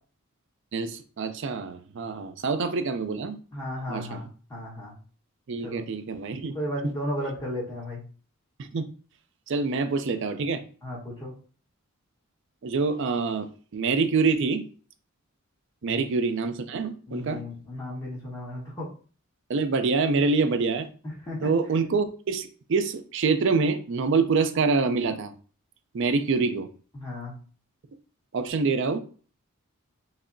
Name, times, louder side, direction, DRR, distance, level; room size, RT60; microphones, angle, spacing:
voice 1, 0.7-3.4 3.9-4.3 5.5-6.6 8.6-8.9 9.5-10.6 12.6-13.5 13.7-14.6 15.8-17.4 19.5-20.9 21.4-25.3 25.9-26.7 28.3-29.0, right 4 dB, 55° right, 0.4 m, -26 dB
voice 2, 3.5-4.9 5.6-5.8 6.5-8.0 10.8-11.3 15.8-16.0 17.1-18.9 21.2-21.5 26.9-27.4, left 1 dB, 15° left, 1.0 m, -34 dB
5.7 x 2.0 x 2.5 m
head